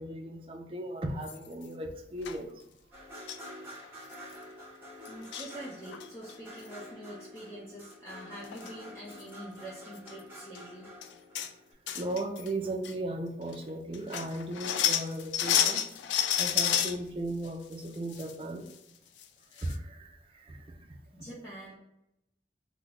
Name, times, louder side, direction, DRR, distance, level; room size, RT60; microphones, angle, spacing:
voice 1, 0.0-2.6 3.9-4.4 11.9-15.8 16.4-18.7 19.5-20.9, right 1 dB, 30° right, 3 dB, 0.4 m, -37 dB
sound 1, 1.2-1.6 2.2-2.4 3.3-3.5 3.8-3.9 4.1-4.4 5.0-5.5 5.9-6.3 8.1-8.2 8.5-8.7 9.1-9.2 10.0-10.1 10.5-10.6 11.0-11.5 11.9-12.5 12.8-12.9 13.5-13.6 13.9-17.0 17.4-18.3 18.7-18.8 19.2-19.3 19.6-19.7, left 9 dB, 90° left, 0.3 m, -30 dB
sound 2, 2.9-11.7, equal, 10° right, 1.0 m, -48 dB
voice 2, 5.1-10.9 21.1-21.8, right 1 dB, 15° left, -8 dB, 0.6 m, -45 dB
3.0 x 2.1 x 3.7 m, 0.83 s
head